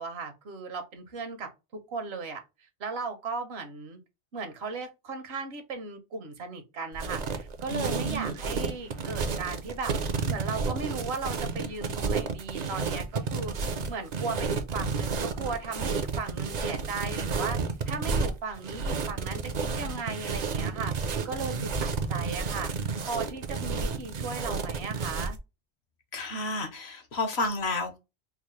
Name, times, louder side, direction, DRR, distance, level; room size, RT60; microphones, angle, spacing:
voice 1, 0.0-2.4 2.8-4.0 4.3-9.9 10.3-25.4, right 4 dB, 70° right, 1.0 m, -37 dB
sound 1, 6.9-25.4, right 4 dB, 50° right, 0.6 m, -31 dB
voice 2, 7.7-8.3 26.1-28.0, left 2 dB, 70° left, 1.2 m, -31 dB
4.6 x 2.0 x 3.0 m
omnidirectional pair, 1.2 m